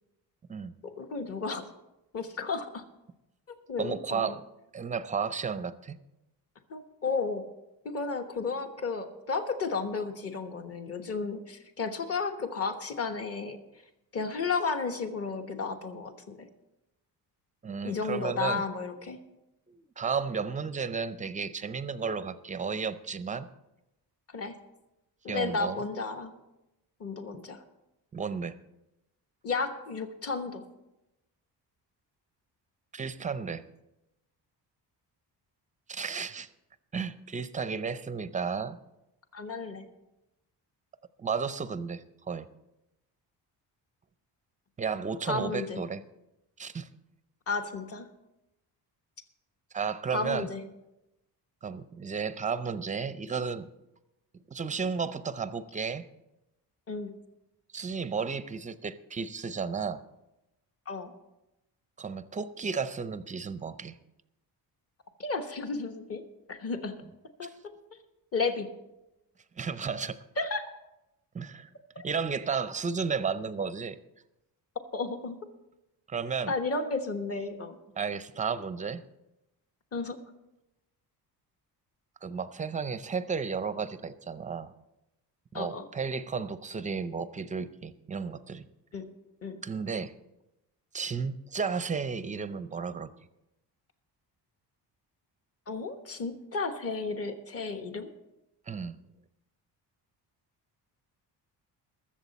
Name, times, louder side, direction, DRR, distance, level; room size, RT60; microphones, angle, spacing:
voice 1, 0.8-1.7 2.1-2.8 3.5-4.3 6.7-7.5 7.8-13.6 14.1-16.5 17.8-19.2 24.3-24.6 25.2-26.3 27.0-27.6 29.4-30.6 39.3-39.9 45.2-45.8 47.5-48.1 50.1-50.6 56.9-57.1 60.9-61.1 65.2-66.2 66.5-67.0 67.4-67.7 68.3-68.7 70.4-70.6 71.9-72.0 74.9-75.4 76.5-77.8 79.9-80.2 85.5-85.9 88.9-89.1 89.4-89.6 95.7-98.1, left 4 dB, 35° left, 6 dB, 1.2 m, -33 dB
voice 2, 3.8-4.4 4.7-6.0 17.6-18.6 19.7-23.5 25.3-25.8 28.1-28.6 32.9-33.6 35.9-36.5 36.9-38.8 41.2-42.5 44.8-46.0 46.6-46.9 49.7-50.5 51.6-53.7 54.5-56.0 57.7-60.0 62.0-63.9 67.4-67.5 69.6-70.2 71.3-71.7 72.0-74.0 76.1-76.5 78.0-79.0 82.2-84.7 85.5-88.7 89.6-90.1 90.9-93.1 98.7-99.0, right 5 dB, 20° right, 13 dB, 0.5 m, -33 dB
21.5 x 7.4 x 4.1 m, 0.93 s
cardioid pair, 140°, 41 cm